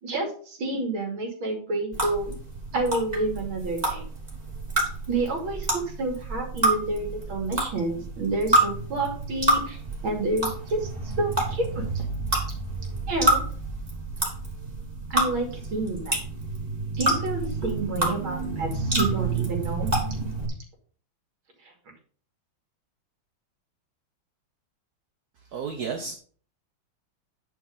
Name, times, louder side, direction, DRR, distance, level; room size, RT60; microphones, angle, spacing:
voice 1, 0.0-2.3 2.7-4.0 5.1-12.0 13.1-13.4 15.1-16.2 16.9-19.9 21.6-21.7, right 2 dB, 80° right, 1 dB, 3.3 m, -29 dB
sound 1, 1.9-20.5, right 2 dB, 20° right, 2.7 m, -28 dB
voice 2, 25.5-26.2, right 5 dB, 55° right, 4 dB, 1.3 m, -32 dB
9.9 x 4.5 x 5.5 m, 0.44 s
omnidirectional pair, 2.2 m